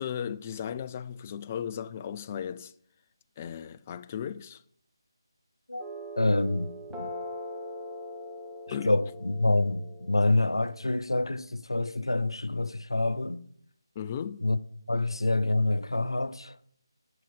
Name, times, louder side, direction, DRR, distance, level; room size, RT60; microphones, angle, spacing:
voice 1, 0.0-2.7 3.4-4.6 8.7-8.9 14.0-14.5, left 8 dB, 25° left, 0.4 m, -36 dB
sound 1, 5.8-10.9, left 1 dB, ahead, 1.1 m, -41 dB
voice 2, 6.2-7.1 8.8-13.4 14.4-14.6 14.9-16.6, left 2 dB, 85° left, 0.6 m, -27 dB
8.2 x 6.0 x 7.5 m
figure-of-eight pair, 155°, 2 cm